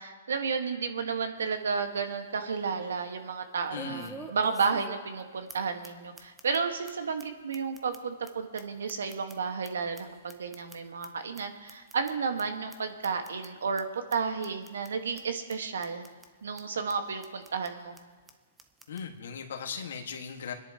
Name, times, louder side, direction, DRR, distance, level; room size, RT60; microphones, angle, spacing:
voice 1, 0.0-16.1 16.4-17.9, right 5 dB, 80° right, 6 dB, 1.5 m, -32 dB
sound 1, 1.4-1.5 1.9-2.0 3.7-5.2 5.5-5.6 5.8-5.9 6.2-6.6 6.9-7.0 7.2-7.3 7.5-9.7 9.9-11.1 11.3-11.4 11.7-12.1 12.4-12.5 12.7-12.8 13.0-13.5 13.8-13.9 14.1-14.2 14.4-14.9 15.2-15.3 15.5-15.6 15.8-16.3 16.6-16.7 16.9-17.0 17.2-17.7 18.0-18.1 18.3-18.4 18.6-19.0, right 4 dB, 10° right, 0.7 m, -46 dB
voice 2, 3.7-4.3 18.9-20.5, left 6 dB, 75° left, 3 dB, 1.6 m, -38 dB
26.5 x 10.5 x 2.9 m, 1.4 s
hypercardioid pair, 140°, 0 cm